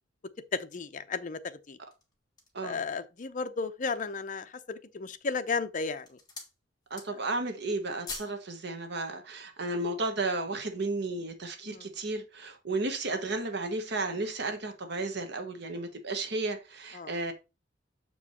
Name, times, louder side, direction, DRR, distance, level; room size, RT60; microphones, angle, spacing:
voice 1, 0.5-1.8 2.6-6.1 11.6-11.9 16.9-17.1, left 4 dB, 45° left, 0.6 m, -34 dB
sound 1, 1.7-2.7 3.3-3.4 3.8-4.4 5.1-5.5 5.8-6.6 6.8-7.4 7.7-8.4 8.7-8.9, left 3 dB, 20° left, 2.1 m, -44 dB
voice 2, 6.9-17.3, right 2 dB, 60° right, 1.2 m, -33 dB
7.2 x 4.7 x 4.2 m
head